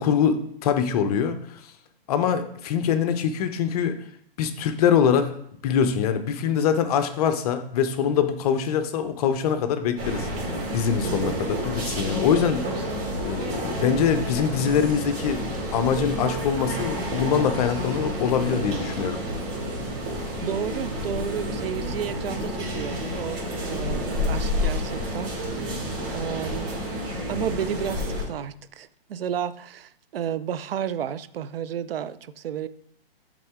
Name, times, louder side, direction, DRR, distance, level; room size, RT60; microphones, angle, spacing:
voice 1, 0.0-1.6 2.1-4.0 4.4-5.3 5.6-10.3 10.7-12.7 13.2-15.4 15.7-19.2, left 7 dB, 40° left, 10 dB, 0.6 m, -23 dB
sound 1, 10.0-28.3, equal, 30° right, 2.4 m, -30 dB
voice 2, 11.0-11.4 20.4-25.8 26.1-26.7 27.3-32.7, right 9 dB, 70° right, 15 dB, 0.5 m, -32 dB
7.6 x 3.7 x 3.5 m, 0.71 s
hypercardioid pair, 135°, 30 cm